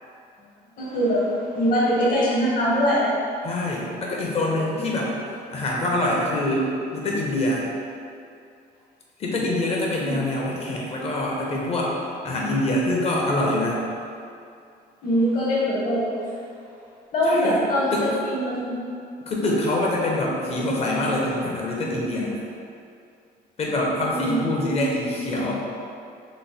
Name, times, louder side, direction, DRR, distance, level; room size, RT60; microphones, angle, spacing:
voice 1, 0.8-3.1 4.5-4.6 10.0-10.2 15.0-16.1 17.1-18.8 24.1-24.5, equal, 55° left, -7 dB, 1.3 m, -22 dB
voice 2, 3.4-7.6 9.2-12.0 12.2-13.9 17.3-17.6 17.9-18.2 19.3-22.4 23.6-25.6, left 1 dB, 35° left, -3 dB, 0.7 m, -25 dB
3.1 x 2.1 x 4.0 m, 2.5 s
cardioid pair, 110°, 17 cm